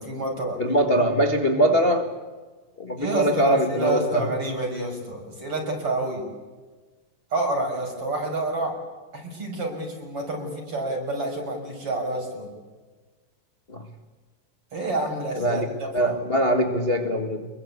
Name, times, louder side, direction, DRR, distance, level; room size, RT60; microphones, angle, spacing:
voice 1, 0.0-0.6 3.0-6.3 7.3-8.8 9.1-12.5 14.7-16.2, right 2 dB, 40° right, 2 dB, 7.0 m, -28 dB
voice 2, 0.6-2.1 2.8-4.3 13.7-13.9 15.4-15.7 15.9-17.5, equal, 30° left, 5 dB, 1.1 m, -22 dB
26.0 x 23.0 x 8.5 m, 1.3 s
omnidirectional pair, 3.9 m